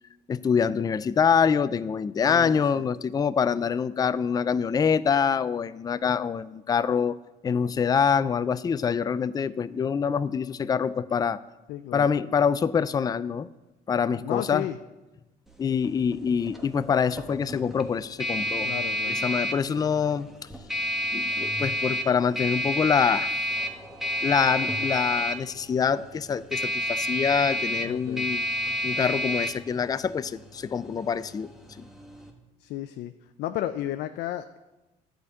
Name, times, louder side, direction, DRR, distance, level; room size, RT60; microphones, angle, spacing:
voice 1, 0.3-7.2 7.4-11.4 11.9-13.5 13.9-14.7 15.6-18.7 19.1-20.3 21.1-23.3 24.2-28.4 28.8-31.5 31.8-31.9, left 6 dB, 25° left, 14 dB, 0.4 m, -25 dB
voice 2, 2.3-2.8 11.7-12.1 14.2-14.8 18.6-19.1 27.8-28.3 32.6-33.1 33.4-34.6, left 13 dB, 75° left, 8 dB, 0.5 m, -33 dB
sound 1, 15.5-32.3, equal, ahead, 1.2 m, -31 dB
11.0 x 5.2 x 8.1 m, 1.0 s
cardioid pair, 110°, 17 cm